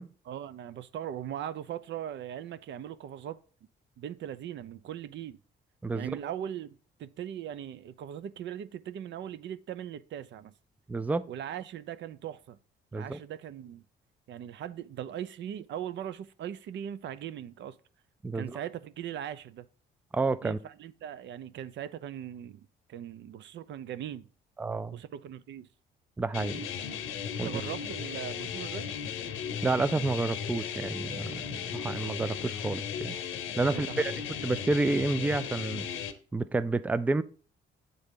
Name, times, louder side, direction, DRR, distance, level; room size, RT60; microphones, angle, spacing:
voice 1, 0.3-3.4 4.0-5.4 5.9-10.5 11.3-12.6 12.9-13.8 14.3-17.8 18.3-19.7 20.4-24.3 24.9-25.7 27.4-28.9 33.6-34.1, right 10 dB, 65° right, 0.5 m, -39 dB
voice 2, 10.9-11.3 12.9-13.2 18.2-18.5 20.1-20.6 24.6-25.0 26.2-26.7 27.4-27.5 29.6-31.4 31.7-33.2 33.6-34.1 34.4-35.9 36.3-37.2, right 3 dB, 10° right, 0.3 m, -29 dB
sound 1, 26.3-36.1, left 8 dB, 85° left, 0.8 m, -36 dB
8.2 x 3.9 x 3.6 m
cardioid pair, 90°, 20 cm